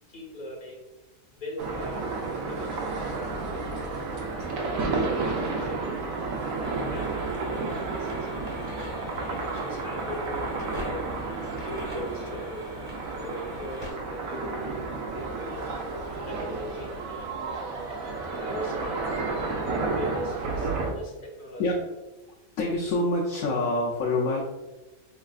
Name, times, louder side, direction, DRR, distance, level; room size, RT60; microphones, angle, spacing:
voice 1, 0.1-0.9 1.3-3.8 4.2-6.1 6.3-7.4 7.6-8.4 9.2-10.4 10.8-11.2 11.5-12.8 13.1-15.5 15.9-17.3 18.4-21.6, equal, 45° left, 0 dB, 0.9 m, -41 dB
sound 1, 1.6-20.9, right 3 dB, 80° right, 1.1 m, -31 dB
sound 2, 6.6-13.9, right 1 dB, 20° right, 1.0 m, -41 dB
voice 2, 22.6-24.4, left 2 dB, 75° left, -4 dB, 1.0 m, -26 dB
4.3 x 3.2 x 2.3 m, 1.1 s
omnidirectional pair, 1.4 m